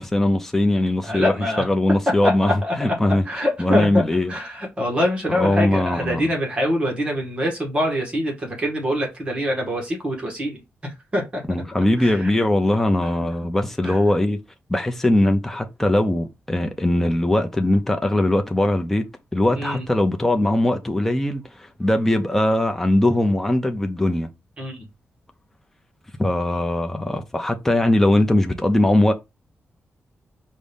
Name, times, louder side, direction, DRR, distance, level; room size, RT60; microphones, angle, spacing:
voice 1, 0.0-4.3 5.3-6.3 11.5-14.4 14.7-24.3 26.2-29.1, left 1 dB, 10° left, 0.5 m, -20 dB
voice 2, 1.0-1.6 2.2-2.9 3.3-4.0 4.3-11.4 12.0-12.3 13.2-13.3 13.8-14.0 19.6-19.8 24.6-24.8, equal, 25° right, 1.7 m, -25 dB
5.2 x 2.7 x 3.4 m
wide cardioid pair, 160°, 4 cm